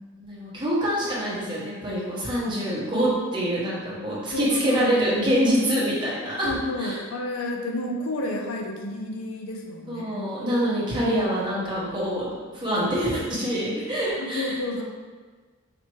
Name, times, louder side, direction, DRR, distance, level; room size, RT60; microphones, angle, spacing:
voice 1, 0.2-6.5 6.8-7.0 9.9-12.3 12.5-14.8, equal, 25° right, -8 dB, 1.2 m, -25 dB
voice 2, 4.3-4.9 6.4-10.4 14.2-14.8, left 1 dB, 80° left, 2 dB, 0.5 m, -31 dB
5.1 x 2.9 x 3.0 m, 1.4 s
head